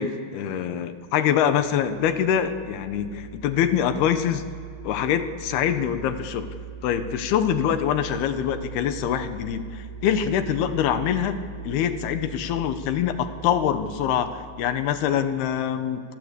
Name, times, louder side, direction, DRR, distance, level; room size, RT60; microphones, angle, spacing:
voice 1, 0.0-4.4 4.8-6.5 6.8-11.4 11.6-16.0, left 9 dB, 70° left, 10 dB, 2.8 m, -24 dB
sound 1, 1.0-15.4, right 6 dB, 75° right, 1.7 m, -40 dB
27.0 x 25.0 x 8.2 m, 2.4 s
omnidirectional pair, 5.0 m